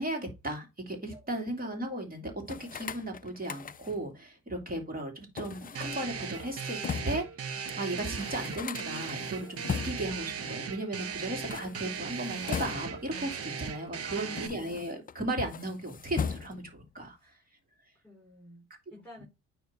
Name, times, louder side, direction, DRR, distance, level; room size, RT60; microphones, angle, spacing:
voice 1, 0.0-17.2, right 1 dB, 30° right, 2.7 m, -36 dB
sound 1, 2.4-4.1 5.4-7.3 7.7-7.8 8.0-10.2 11.3-13.1 13.9-15.2 15.5-16.8, left 7 dB, 30° left, 0.5 m, -39 dB
sound 2, 5.7-14.5, right 6 dB, 50° right, 1.1 m, -38 dB
voice 2, 14.1-14.5 17.0-17.4 18.0-19.2, left 1 dB, 5° left, 4.8 m, -50 dB
9.2 x 3.1 x 4.1 m
cardioid pair, 90°, 30 cm